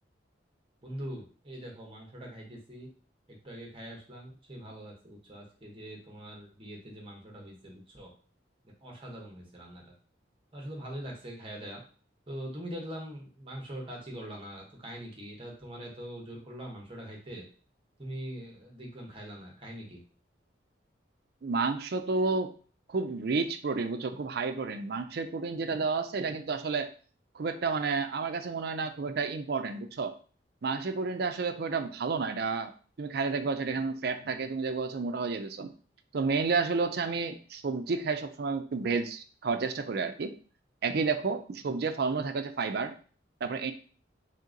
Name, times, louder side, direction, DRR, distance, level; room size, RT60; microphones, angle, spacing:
voice 1, 0.8-2.9 3.3-8.1 8.6-9.9 10.5-11.8 12.3-17.5 18.0-20.0, equal, 30° right, -1 dB, 1.1 m, -43 dB
voice 2, 21.4-22.5 22.9-26.9 27.3-30.1 30.6-32.7 33.0-35.7 36.1-40.3 40.8-42.9 43.4-43.7, right 4 dB, 55° right, 8 dB, 0.4 m, -31 dB
3.5 x 2.8 x 3.8 m, 0.41 s
head